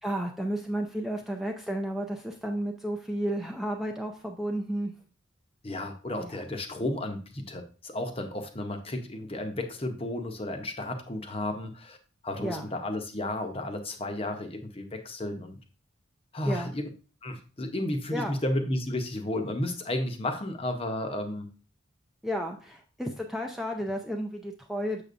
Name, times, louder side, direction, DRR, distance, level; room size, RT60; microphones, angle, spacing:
voice 1, 0.0-4.9 6.2-6.4 12.4-12.7 16.5-16.7 18.1-18.4 22.2-25.0, equal, ahead, 2 dB, 0.4 m, -32 dB
voice 2, 5.6-12.0 12.2-15.6 16.3-16.9 17.2-21.5, left 1 dB, 25° left, 6 dB, 0.7 m, -33 dB
6.9 x 6.7 x 2.5 m, 0.37 s
head